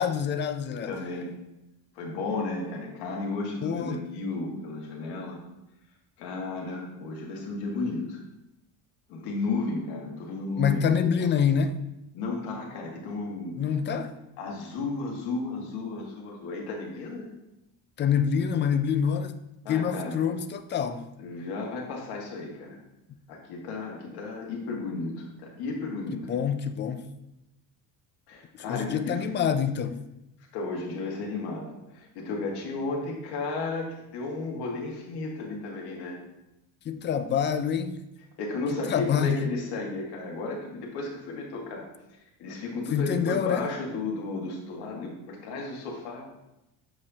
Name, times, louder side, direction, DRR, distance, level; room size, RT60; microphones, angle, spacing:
voice 1, 0.0-1.0 3.6-4.0 10.6-11.8 13.6-14.1 18.0-19.3 19.7-21.1 26.1-27.1 28.6-30.0 36.9-38.0 38.9-39.4 42.9-43.7, left 7 dB, 30° left, 0.4 m, -26 dB
voice 2, 0.8-1.3 2.0-5.4 6.2-8.2 9.1-11.3 12.1-13.6 13.9-14.0 14.4-17.3 19.6-20.2 21.2-22.8 23.3-26.3 28.3-29.3 30.5-36.2 38.4-41.9 42.4-46.2, left 3 dB, 70° left, 1.8 m, -33 dB
7.4 x 4.7 x 2.8 m
cardioid pair, 110°, 40 cm